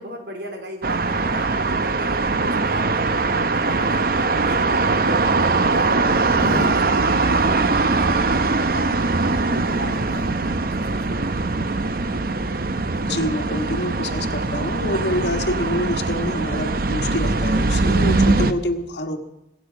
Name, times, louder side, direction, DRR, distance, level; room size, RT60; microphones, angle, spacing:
voice 1, 0.0-11.7, right 1 dB, 70° right, 3 dB, 3.4 m, -36 dB
sound 1, 0.8-18.5, right 3 dB, 55° right, 0.8 m, -21 dB
Zipper (clothing), 6.1-6.8 9.0-10.3 12.2-12.5, equal, 15° right, 4.6 m, -31 dB
voice 2, 13.0-19.2, left 1 dB, 75° left, 3 dB, 1.5 m, -26 dB
24.5 x 8.5 x 6.2 m, 0.91 s
head